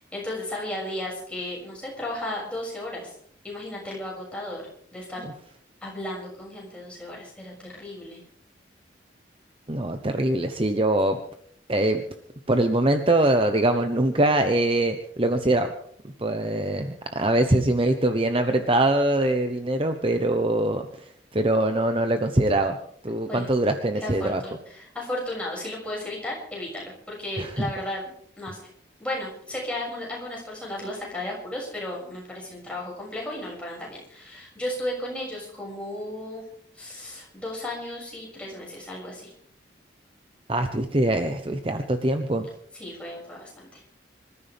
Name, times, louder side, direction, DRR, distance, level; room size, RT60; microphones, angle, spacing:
voice 1, 0.0-3.1 3.4-4.6 4.9-5.2 5.8-8.2 23.3-23.5 24.0-28.0 28.4-28.6 29.0-36.4 36.7-39.3 42.7-43.8, left 1 dB, 5° left, -4 dB, 6.6 m, -34 dB
voice 2, 9.7-11.2 11.7-12.0 12.5-15.7 16.2-20.9 21.3-22.8 23.0-24.4 27.4-27.7 40.5-42.5, right 1 dB, 30° right, 6 dB, 0.9 m, -23 dB
26.0 x 14.0 x 3.5 m, 0.64 s
head